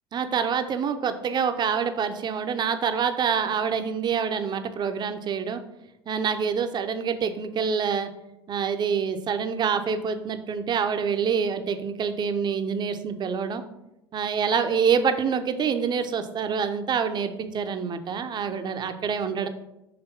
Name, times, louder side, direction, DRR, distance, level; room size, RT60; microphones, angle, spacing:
voice 1, 0.1-5.6 6.1-8.1 8.5-13.6 14.1-19.5, right 6 dB, 30° right, 8 dB, 0.7 m, -26 dB
5.9 x 3.5 x 5.4 m, 0.91 s
figure-of-eight pair, 70°, 14 cm